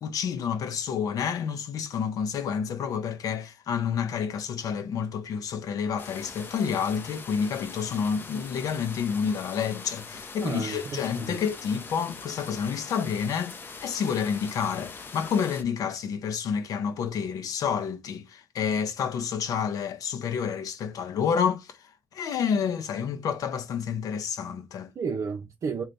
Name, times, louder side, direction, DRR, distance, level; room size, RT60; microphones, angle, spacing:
voice 1, 0.0-24.9, left 7 dB, 80° left, 0.7 m, -29 dB
sound 1, 6.0-15.6, left 4 dB, 35° left, 0.6 m, -42 dB
voice 2, 10.4-11.4 25.0-25.8, right 5 dB, 55° right, 0.7 m, -32 dB
3.9 x 2.3 x 3.3 m
wide cardioid pair, 150°, 6 cm